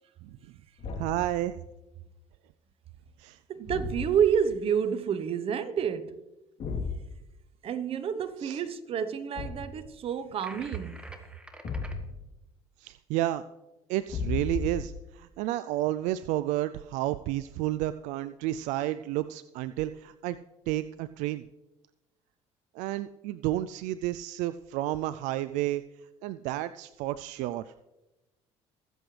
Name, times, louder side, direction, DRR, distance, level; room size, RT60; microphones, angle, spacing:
Thump thud, 0.8-1.3 3.6-4.4 6.6-7.1 9.3-9.8 11.6-12.3 14.1-15.0, left 4 dB, 55° left, 3.3 m, -34 dB
voice 1, 1.0-1.6 3.2-3.4 8.4-8.6 12.8-13.4 13.9-20.4 20.7-21.4 22.7-25.8 26.2-27.7, right 14 dB, 80° right, 0.4 m, -31 dB
voice 2, 3.5-6.2 7.6-11.0, right 8 dB, 50° right, 1.1 m, -29 dB
sound 1, 10.4-12.0, right 1 dB, 10° right, 1.6 m, -47 dB
22.5 x 7.9 x 3.3 m
supercardioid pair, 95°, 12 cm